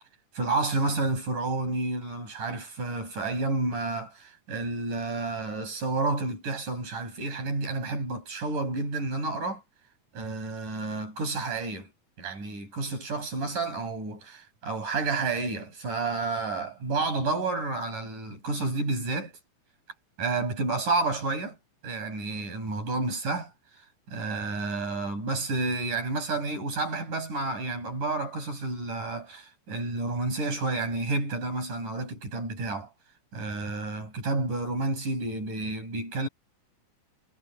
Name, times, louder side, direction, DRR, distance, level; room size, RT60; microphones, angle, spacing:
voice 1, 0.3-9.6 10.1-11.9 12.2-19.4 20.2-21.6 21.8-23.5 24.1-32.9 33.3-36.3, right 3 dB, 90° right, 9.5 m, -30 dB
omnidirectional pair, 3.5 m